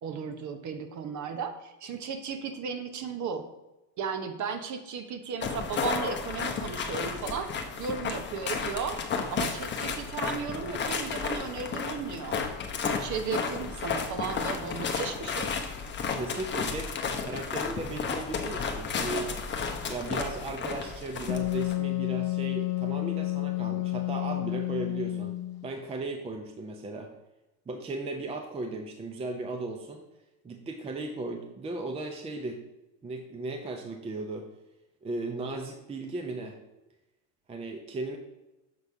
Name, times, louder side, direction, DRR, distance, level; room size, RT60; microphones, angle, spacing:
voice 1, 0.0-3.5 4.0-9.0 9.3-12.4 12.8-15.6, right 6 dB, 40° right, 8 dB, 0.8 m, -35 dB
sound 1, 5.4-21.7, left 5 dB, 25° left, 0.8 m, -33 dB
voice 2, 16.1-16.9 17.2-19.3 19.9-25.3 25.6-27.1 27.7-30.0 30.4-32.6 33.0-34.5 35.0-36.6 37.5-38.2, right 2 dB, 15° right, 3 dB, 0.5 m, -36 dB
Wind instrument woodwind instrument, 21.3-25.7, left 18 dB, 75° left, 0.6 m, -30 dB
6.8 x 4.1 x 4.7 m, 1.0 s
supercardioid pair, 120°, 46 cm